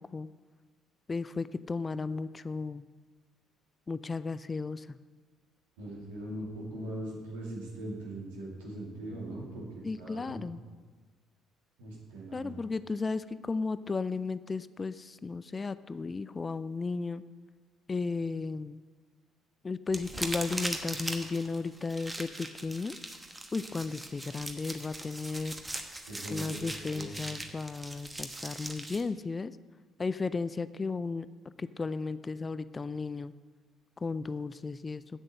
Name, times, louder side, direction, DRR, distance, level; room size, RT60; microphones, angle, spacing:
voice 1, 1.1-2.8 3.9-5.0 9.8-10.6 12.3-17.2 17.9-18.8 19.6-23.0 23.5-25.5 26.3-29.5 30.0-31.3 31.6-33.3 34.0-35.0, left 4 dB, 30° left, 15 dB, 0.3 m, -34 dB
voice 2, 5.8-10.4 11.8-12.5 26.1-26.6 26.9-27.2, right 1 dB, 75° right, -3 dB, 2.3 m, -40 dB
sound 1, 19.9-29.0, right 1 dB, 15° right, 1.1 m, -40 dB
8.1 x 7.7 x 6.4 m, 1.4 s
figure-of-eight pair, 50°, 0 cm